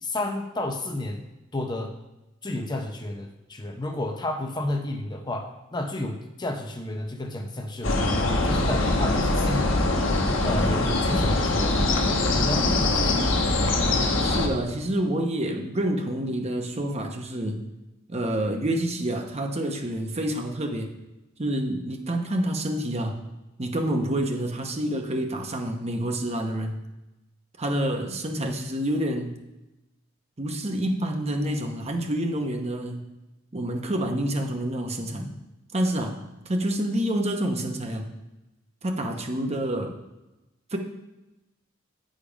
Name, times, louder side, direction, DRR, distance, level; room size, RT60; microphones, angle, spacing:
voice 1, 0.0-1.2 1.5-1.9 2.4-9.8 10.3-11.9 12.3-13.3, left 1 dB, 20° left, 3 dB, 0.7 m, -31 dB
sound 1, 7.8-14.5, left 2 dB, 85° left, 1.1 m, -23 dB
voice 2, 14.2-17.6 18.1-20.9 21.4-23.2 23.6-26.8 27.6-29.4 30.4-33.1 33.5-35.3 35.7-38.1 38.8-40.0 40.7-40.8, right 1 dB, 35° right, 4 dB, 0.9 m, -28 dB
8.5 x 5.2 x 5.1 m, 0.99 s
head